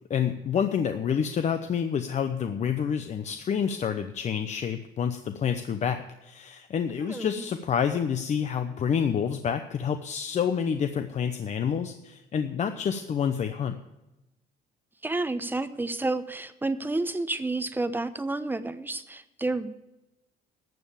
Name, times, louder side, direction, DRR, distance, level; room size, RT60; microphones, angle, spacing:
voice 1, 0.1-13.8, left 7 dB, 45° left, 8 dB, 0.8 m, -28 dB
voice 2, 7.0-7.4 15.0-19.7, right 2 dB, 10° right, 11 dB, 0.9 m, -30 dB
12.0 x 7.3 x 8.7 m, 0.97 s
cardioid pair, 110°, 17 cm